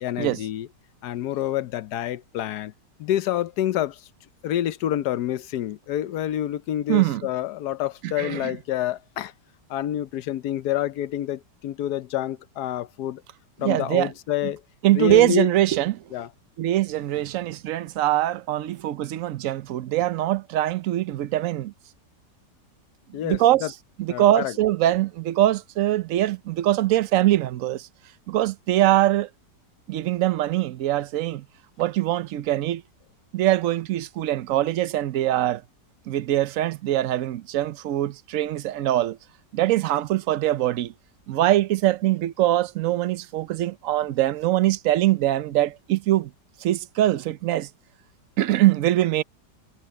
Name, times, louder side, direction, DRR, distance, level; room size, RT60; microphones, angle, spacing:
voice 1, 0.0-0.7 1.0-2.7 3.0-4.1 4.4-9.3 9.7-13.2 13.6-14.6 14.9-15.5 16.1-16.3 23.1-23.7 24.1-24.5, left 12 dB, 70° left, 1.2 m, -28 dB
voice 2, 6.9-7.2 8.0-8.5 13.6-14.1 14.4-14.5 14.8-16.0 16.6-21.7 23.1-23.7 24.0-27.9 28.3-29.3 29.9-31.4 31.8-32.8 33.3-35.6 36.1-39.2 39.5-40.9 41.3-46.3 46.6-47.7 48.4-49.2, right 14 dB, 60° right, 0.9 m, -23 dB
omnidirectional pair, 1.9 m